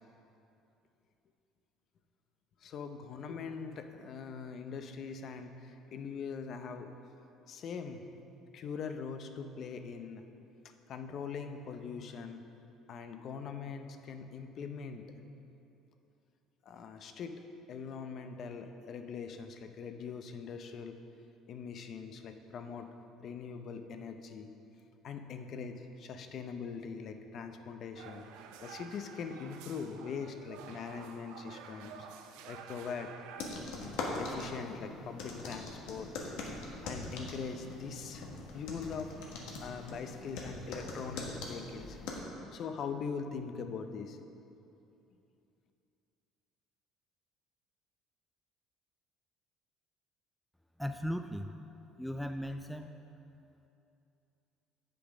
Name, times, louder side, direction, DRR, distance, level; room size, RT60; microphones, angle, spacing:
voice 1, 2.6-6.9 7.5-8.1 8.5-10.2 10.9-12.4 12.9-15.0 16.6-17.3 17.7-21.0 21.5-22.9 23.2-24.5 25.0-28.2 28.6-32.1 32.5-33.1 33.7-36.3 36.8-39.1 39.6-42.0 42.3-44.2, left 6 dB, 50° left, 7 dB, 0.6 m, -42 dB
sound 1, 28.0-34.5, right 7 dB, 85° right, 0.5 m, -51 dB
sound 2, 33.4-42.2, left 2 dB, 85° left, 1.4 m, -42 dB
voice 2, 50.8-51.5 52.0-52.9, equal, ahead, 6 dB, 0.3 m, -37 dB
8.3 x 6.7 x 5.1 m, 2.8 s
cardioid pair, 120°, 0 cm